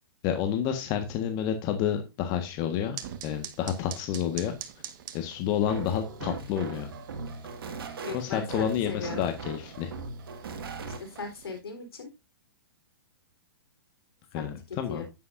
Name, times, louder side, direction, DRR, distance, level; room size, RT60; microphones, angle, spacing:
voice 1, 0.2-3.0 3.2-4.5 5.1-6.9 8.1-9.9 14.3-15.0, left 9 dB, 35° left, 6 dB, 1.5 m, -29 dB
sound 1, 3.0-11.6, right 10 dB, 50° right, 1.5 m, -46 dB
sound 2, 5.6-11.3, right 4 dB, 70° right, 2.1 m, -39 dB
voice 2, 8.0-9.2 11.0-12.1 14.3-15.1, left 5 dB, 80° left, 3 dB, 3.8 m, -38 dB
10.0 x 9.3 x 2.6 m, 0.26 s
hypercardioid pair, 120°, 13 cm